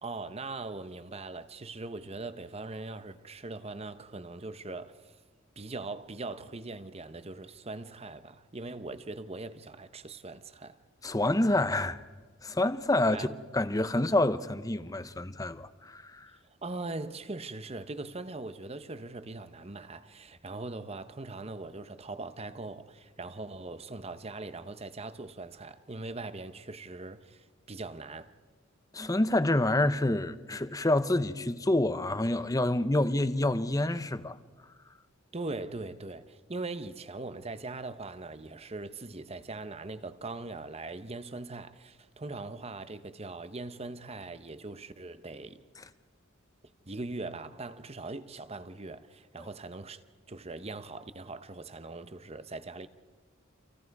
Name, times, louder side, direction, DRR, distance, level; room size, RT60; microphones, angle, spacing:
voice 1, 0.0-5.2 5.6-10.8 13.1-13.3 16.6-28.3 35.3-45.6 46.9-52.9, right 2 dB, 30° right, 1.0 m, -41 dB
voice 2, 11.0-12.0 12.4-13.3 13.5-16.3 28.9-34.4, left 1 dB, 15° left, 0.8 m, -27 dB
30.0 x 27.0 x 4.8 m
head